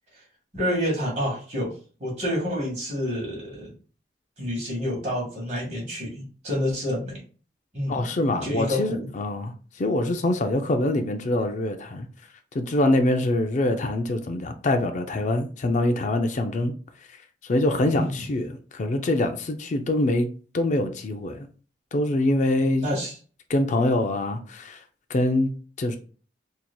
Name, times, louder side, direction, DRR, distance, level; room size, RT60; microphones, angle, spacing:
voice 1, 0.5-1.7 2.0-3.7 4.4-7.2 7.7-8.1 8.4-9.1 17.9-18.2 22.8-23.1, equal, 40° right, 1.7 m, -28 dB
voice 2, 7.9-12.1 12.5-16.7 17.5-20.3 20.5-21.5 21.9-23.0 23.5-24.8 25.1-25.5 25.8-26.0, left 1 dB, 45° left, 0.4 m, -24 dB
4.3 x 2.7 x 2.3 m
head